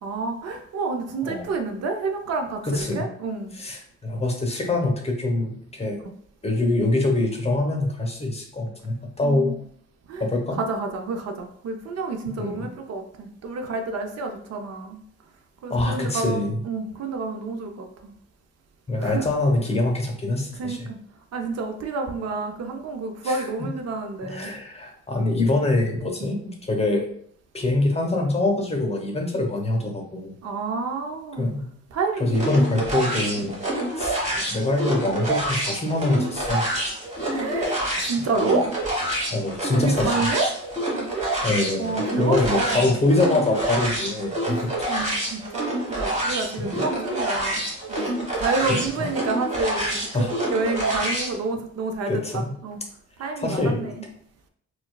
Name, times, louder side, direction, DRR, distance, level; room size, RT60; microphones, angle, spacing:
voice 1, 0.0-3.6 9.2-9.6 10.1-10.2 10.6-15.0 15.6-18.1 19.0-19.3 20.6-21.0 21.3-24.5 26.2-26.3 30.4-31.5 31.9-32.5 33.5-33.6 37.3-38.7 39.8-40.5 41.8-43.0 44.9-52.8 53.2-54.0, right 3 dB, 60° right, 4 dB, 0.5 m, -29 dB
voice 2, 2.7-3.0 3.5-6.0 6.4-9.5 10.2-10.6 12.3-12.7 15.7-16.5 18.9-20.9 23.2-23.7 24.2-27.1 27.5-30.3 31.4-31.7 32.2-33.6 33.9-34.2 34.5-36.6 38.4-38.6 39.3-40.3 41.4-44.7 46.6-46.8 48.7-49.1 50.1-50.3 52.1-52.5 53.4-53.8, left 2 dB, 20° left, 1 dB, 0.8 m, -24 dB
sound 1, 32.3-51.3, right 1 dB, 25° right, 1.3 m, -27 dB
4.3 x 2.3 x 2.3 m, 0.64 s
cardioid pair, 90°, 30 cm